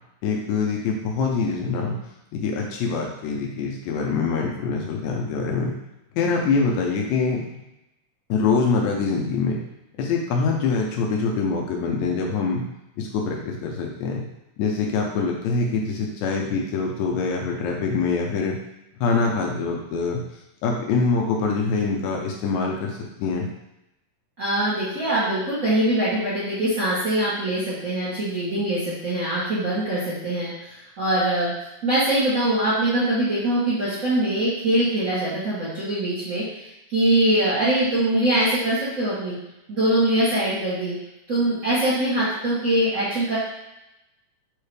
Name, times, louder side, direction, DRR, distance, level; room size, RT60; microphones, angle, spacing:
voice 1, 0.2-2.0 2.3-5.8 6.1-7.4 8.3-9.6 10.0-12.7 13.0-14.3 14.6-18.6 18.9-20.2 20.6-23.5, left 4 dB, 75° left, 0 dB, 2.0 m, -24 dB
voice 2, 24.4-31.5 31.8-36.4 36.9-39.4 39.7-40.9 41.3-43.4, right 1 dB, 50° right, -11 dB, 0.9 m, -23 dB
5.5 x 2.5 x 3.3 m, 0.91 s
omnidirectional pair, 3.4 m